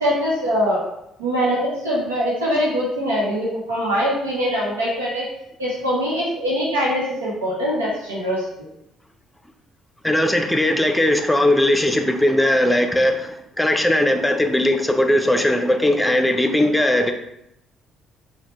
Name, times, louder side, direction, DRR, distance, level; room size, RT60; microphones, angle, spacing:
voice 1, 0.0-0.8 1.2-5.3 5.6-8.5, equal, 90° right, -6 dB, 0.8 m, -22 dB
voice 2, 10.0-13.3 13.6-17.1, left 1 dB, 10° left, 5 dB, 0.5 m, -18 dB
4.9 x 2.2 x 3.0 m, 0.81 s
hypercardioid pair, 50°, 0 cm